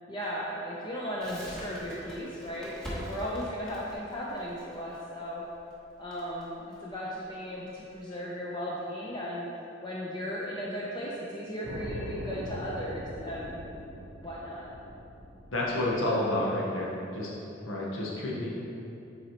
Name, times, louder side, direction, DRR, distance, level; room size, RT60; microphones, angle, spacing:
voice 1, 0.1-5.4 6.0-9.4 9.8-13.6 14.2-14.7, equal, 25° left, -5 dB, 0.6 m, -36 dB
Crackle, 1.2-8.0, equal, 5° left, 1.2 m, -44 dB
sound 1, 11.6-16.5, right 1 dB, 70° right, 0.6 m, -41 dB
voice 2, 15.5-17.3 17.7-18.5, left 1 dB, 90° left, -5 dB, 0.9 m, -29 dB
7.7 x 4.2 x 2.9 m, 2.8 s
head